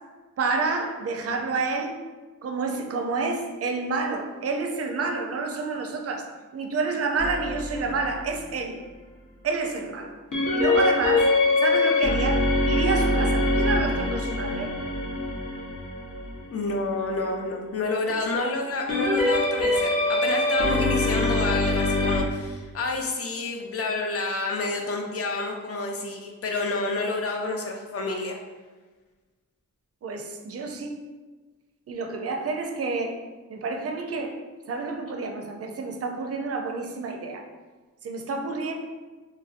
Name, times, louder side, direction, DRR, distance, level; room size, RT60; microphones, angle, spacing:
voice 1, 0.4-2.0 2.4-6.3 6.5-8.8 9.4-10.1 10.5-14.7 30.0-31.0 31.9-33.2 33.5-34.4 34.7-37.4 38.0-38.7, right 4 dB, 50° right, 3 dB, 0.4 m, -29 dB
sound 1, 7.2-8.4 10.3-16.8 18.9-22.2, left 2 dB, 75° left, 0.9 m, -24 dB
voice 2, 16.5-28.4, left 3 dB, 50° left, 2 dB, 0.5 m, -29 dB
3.0 x 2.6 x 2.4 m, 1.3 s
wide cardioid pair, 95°, 31 cm